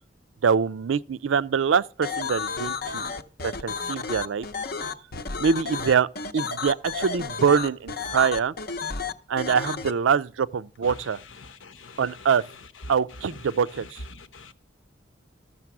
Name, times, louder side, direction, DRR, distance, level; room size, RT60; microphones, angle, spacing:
voice 1, 0.4-3.1 3.4-4.5 5.4-6.1 6.3-8.5 9.3-11.2 12.0-12.4 12.9-14.0, right 6 dB, 80° right, 0.4 m, -24 dB
sound 1, 2.0-9.9, left 5 dB, 55° left, 0.7 m, -32 dB
voice 2, 11.4-12.1 14.1-14.5, left 3 dB, 85° left, 0.9 m, -44 dB
14.0 x 6.8 x 6.0 m
head